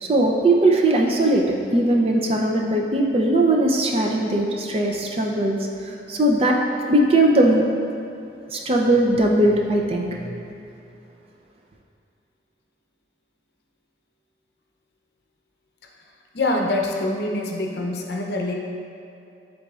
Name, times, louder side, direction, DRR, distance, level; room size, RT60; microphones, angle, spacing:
voice 1, 0.0-6.5 6.9-7.6 8.5-10.4, right 1 dB, 35° right, 0 dB, 0.5 m, -19 dB
voice 2, 16.3-18.5, left 2 dB, 60° left, 1 dB, 0.6 m, -25 dB
10.5 x 3.9 x 2.4 m, 2.7 s
head